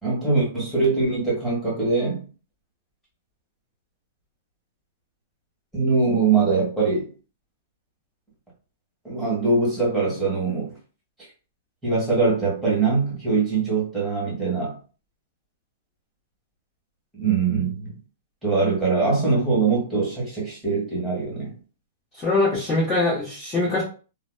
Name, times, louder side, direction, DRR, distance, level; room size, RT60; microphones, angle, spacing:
voice 1, 0.0-2.2 5.7-7.1 9.0-10.7 11.8-14.7 17.1-17.9 18.4-21.5, right 4 dB, 5° right, 1.5 m, -22 dB
voice 2, 22.2-23.8, left 2 dB, 20° left, 1.0 m, -22 dB
2.8 x 2.0 x 2.2 m
hypercardioid pair, 135°, 0 cm